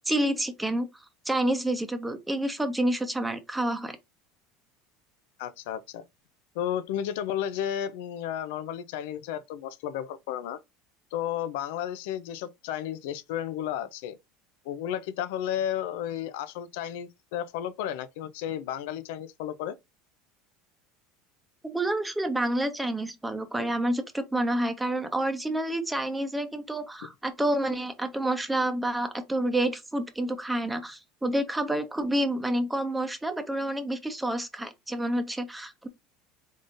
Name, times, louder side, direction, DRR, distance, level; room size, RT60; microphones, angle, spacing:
voice 1, 0.1-0.9 1.2-4.0 21.6-35.9, right 1 dB, 5° right, 0.8 m, -28 dB
voice 2, 5.4-6.0 6.5-10.6 11.1-14.2 14.6-19.7, left 10 dB, 80° left, 0.5 m, -33 dB
3.8 x 3.7 x 2.6 m
supercardioid pair, 125°, 0 cm